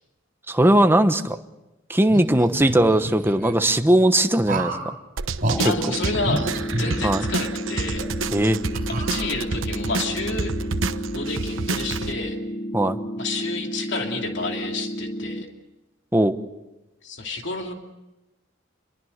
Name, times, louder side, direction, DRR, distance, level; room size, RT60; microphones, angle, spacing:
voice 1, 0.5-1.4 1.9-4.9 5.6-5.7 7.0-7.2 8.3-8.6 12.7-13.0 16.1-16.3, right 1 dB, 10° right, 8 dB, 1.1 m, -19 dB
sound 1, 2.1-3.5 4.4-4.9 5.4-5.6 6.2-7.5 7.9-8.1 8.7-9.6, right 1 dB, 45° right, 4.7 m, -30 dB
sound 2, 5.2-12.1, right 3 dB, 80° right, 1.1 m, -29 dB
sound 3, 5.4-15.4, equal, 30° left, 1.1 m, -32 dB
voice 2, 5.6-6.4 6.8-8.0 8.9-10.5 11.1-12.4 13.2-15.5 17.0-17.7, left 3 dB, 65° left, 3 dB, 2.7 m, -30 dB
27.5 x 22.0 x 6.6 m, 1.0 s
head